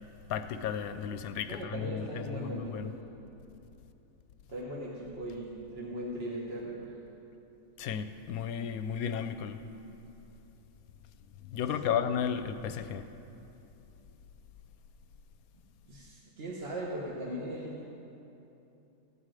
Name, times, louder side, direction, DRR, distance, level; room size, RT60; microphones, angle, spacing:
voice 1, 0.3-2.9 7.8-9.6 11.4-13.1, left 8 dB, 75° left, 9 dB, 1.0 m, -34 dB
voice 2, 1.5-3.0 4.5-6.9 11.8-12.0 15.9-17.8, right 1 dB, 45° right, -4 dB, 1.3 m, -39 dB
14.5 x 4.9 x 8.9 m, 2.9 s
omnidirectional pair, 1.6 m